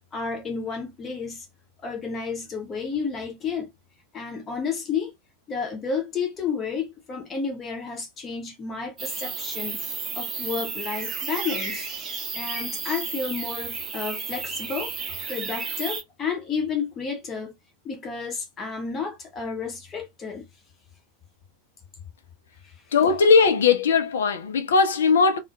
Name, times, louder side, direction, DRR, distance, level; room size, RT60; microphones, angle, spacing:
voice 1, 0.1-1.5 1.8-3.7 4.1-5.1 5.5-9.9 10.2-11.9 12.3-17.6 17.8-20.5 22.6-22.7, left 5 dB, 25° left, 0.7 m, -31 dB
sound 1, 9.0-16.0, right 5 dB, 25° right, 0.7 m, -32 dB
voice 2, 22.9-25.4, left 5 dB, 65° left, 0.5 m, -19 dB
2.2 x 2.1 x 2.6 m
figure-of-eight pair, 90°, 0 cm